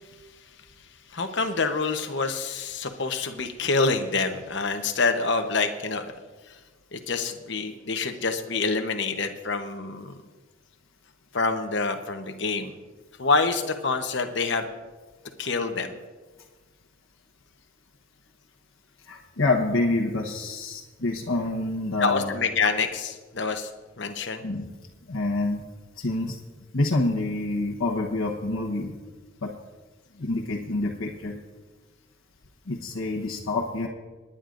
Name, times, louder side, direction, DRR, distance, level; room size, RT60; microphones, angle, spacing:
voice 1, 1.1-6.1 6.9-10.1 11.3-12.7 13.2-14.7 15.4-15.9 22.0-23.7 24.0-24.4, left 4 dB, 60° left, 6 dB, 1.0 m, -26 dB
voice 2, 19.1-22.3 24.4-24.6 25.1-25.6 26.0-26.4 26.7-28.9 29.4-29.5 30.2-31.3 32.7-33.9, left 2 dB, 85° left, -2 dB, 1.1 m, -27 dB
28.0 x 10.0 x 2.6 m, 1.3 s
head